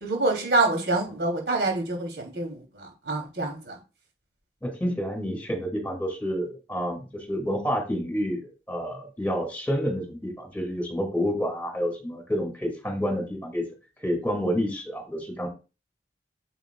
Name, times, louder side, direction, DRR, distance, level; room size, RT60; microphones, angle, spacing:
voice 1, 0.0-3.8, right 2 dB, 75° right, 2 dB, 3.2 m, -26 dB
voice 2, 4.6-8.4 8.7-13.6 14.0-15.5, equal, 10° left, 3 dB, 2.5 m, -29 dB
8.9 x 7.0 x 2.4 m, 0.30 s
head